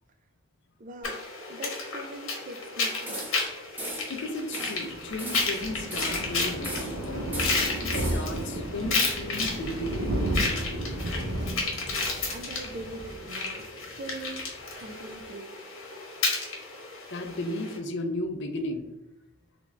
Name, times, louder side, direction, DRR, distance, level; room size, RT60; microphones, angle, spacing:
voice 1, 0.8-1.2 1.5-3.3 10.9-13.6 13.9-15.6, right 2 dB, 40° right, 7 dB, 0.4 m, -43 dB
sound 1, 1.0-17.8, left 3 dB, 90° left, 1.0 m, -32 dB
sound 2, 3.1-3.5 3.8-4.2 4.5-4.8 5.2-6.3 6.6-7.0 7.3-8.4, right 1 dB, 10° right, 0.8 m, -38 dB
voice 2, 4.1-7.4 7.8-10.5 17.1-18.9, left 1 dB, 60° left, 6 dB, 0.5 m, -35 dB
Thunder, 4.6-14.0 14.3-14.5 14.8-14.9 15.1-15.2, right 1 dB, 80° right, 0.7 m, -33 dB
3.3 x 2.5 x 3.1 m, 0.98 s
head